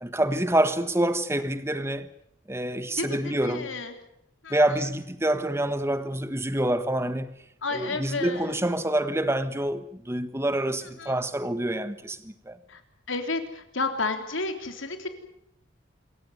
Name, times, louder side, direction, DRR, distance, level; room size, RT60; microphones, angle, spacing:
voice 1, 0.0-2.1 2.5-3.7 4.5-7.3 7.7-12.6, right 1 dB, 15° right, 1.4 m, -27 dB
voice 2, 3.0-3.9 4.4-4.6 7.6-8.6 10.8-11.2 12.7-12.8 13.1-15.1, left 3 dB, 80° left, 3.5 m, -31 dB
27.0 x 15.0 x 9.5 m
head